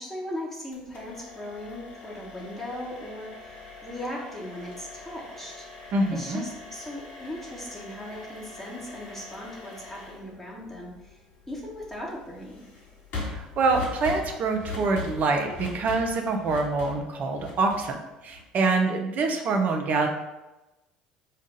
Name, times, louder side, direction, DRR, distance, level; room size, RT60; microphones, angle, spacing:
voice 1, 0.0-5.7 6.1-11.2 11.5-12.6, left 1 dB, 10° left, -4 dB, 1.1 m, -38 dB
sound 1, 0.7-18.6, left 3 dB, 55° left, 1.5 m, -42 dB
voice 2, 5.9-6.4 13.3-20.1, right 3 dB, 45° right, 4 dB, 0.6 m, -25 dB
5.3 x 2.5 x 3.8 m, 1.0 s
figure-of-eight pair, 60°, 4 cm